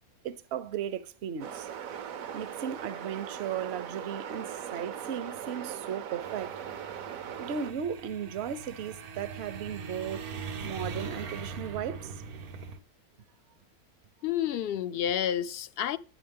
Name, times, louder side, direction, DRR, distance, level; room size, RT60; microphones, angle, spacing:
voice 1, 0.2-1.7 2.3-6.5 7.4-10.3 10.6-12.2, right 8 dB, 55° right, 0.9 m, -36 dB
sound 1, 1.4-7.7, right 8 dB, 70° right, 1.2 m, -39 dB
sound 2, 6.2-12.8, right 5 dB, 85° right, 1.6 m, -41 dB
voice 2, 14.2-16.0, left 10 dB, 55° left, 0.7 m, -30 dB
10.0 x 9.3 x 3.5 m
omnidirectional pair, 1.5 m